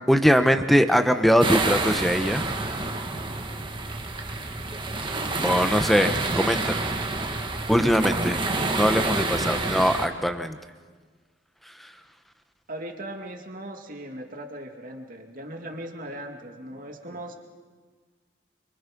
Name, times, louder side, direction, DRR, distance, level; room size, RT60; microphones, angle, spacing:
voice 1, 0.1-2.5 5.4-6.9 7.7-8.4 8.7-10.6 11.7-11.9, equal, ahead, 8 dB, 1.1 m, -21 dB
sound 1, 1.4-10.1, right 2 dB, 25° right, 1.6 m, -28 dB
voice 2, 5.1-5.8 7.8-8.2 12.7-17.3, right 1 dB, 45° right, 3 dB, 2.5 m, -38 dB
27.0 x 24.5 x 5.4 m, 1.5 s
head